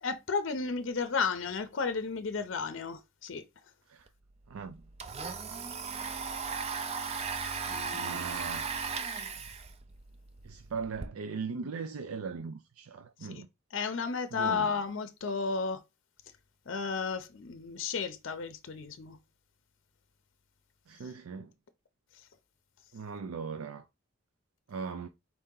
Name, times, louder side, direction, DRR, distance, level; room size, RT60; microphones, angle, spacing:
voice 1, 0.0-3.4 7.7-8.2 13.2-13.4 13.7-15.8 16.7-19.2, left 5 dB, 60° left, 0.5 m, -33 dB
Domestic sounds home sounds, 4.1-4.2 4.4-11.1, right 5 dB, 30° right, 0.3 m, -37 dB
voice 2, 4.5-4.8 7.9-8.8 10.4-13.5 14.3-14.7 20.9-21.5 22.9-23.8 24.7-25.1, right 5 dB, 90° right, 0.4 m, -39 dB
4.3 x 2.8 x 3.6 m
head